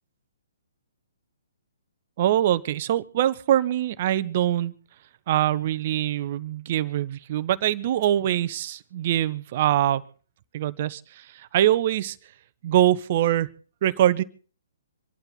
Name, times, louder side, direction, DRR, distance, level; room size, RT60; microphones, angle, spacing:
voice 1, 2.2-4.7 5.3-10.0 10.5-12.2 12.6-13.5 13.8-14.2, right 12 dB, 40° right, 15 dB, 1.0 m, -23 dB
26.0 x 12.0 x 4.0 m, 0.41 s
figure-of-eight pair, 125°, 0 cm